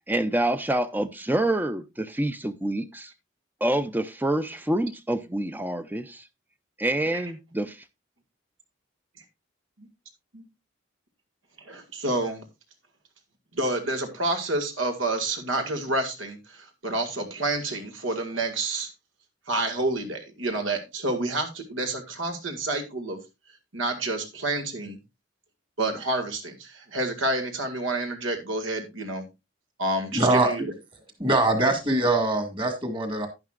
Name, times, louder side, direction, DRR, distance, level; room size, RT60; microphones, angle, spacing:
voice 1, 0.1-3.1 3.6-6.2 6.8-7.8, right 1 dB, 10° right, 0.5 m, -27 dB
voice 2, 11.7-12.4 13.5-18.9 19.5-23.2 23.7-25.0 25.8-29.3 29.8-30.7, right 2 dB, 85° right, 2.0 m, -29 dB
voice 3, 30.1-30.7 31.2-33.3, right 2 dB, 25° right, 2.0 m, -23 dB
11.0 x 10.5 x 2.4 m
head